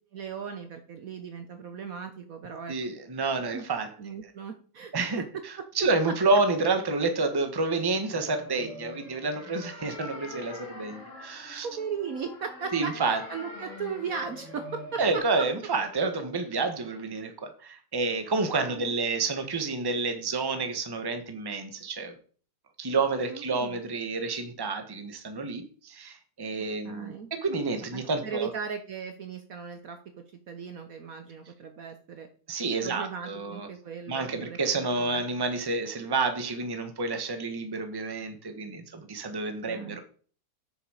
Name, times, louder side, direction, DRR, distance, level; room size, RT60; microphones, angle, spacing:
voice 1, 0.1-2.7 3.5-3.6 4.0-4.9 5.6-5.7 6.0-6.1 11.6-15.4 18.6-19.0 23.3-23.8 26.8-27.3 27.9-30.0 30.5-32.3 32.8-35.2 39.7-40.0, right 6 dB, 60° right, 7 dB, 1.1 m, -37 dB
voice 2, 2.7-3.9 4.9-5.2 5.7-11.7 12.7-13.2 15.0-22.2 22.8-28.5 32.5-33.7 34.1-40.0, right 3 dB, 15° right, 7 dB, 1.0 m, -29 dB
sound 1, 8.1-15.2, left 2 dB, 45° left, 2.2 m, -44 dB
7.9 x 6.8 x 4.9 m, 0.44 s
omnidirectional pair, 2.0 m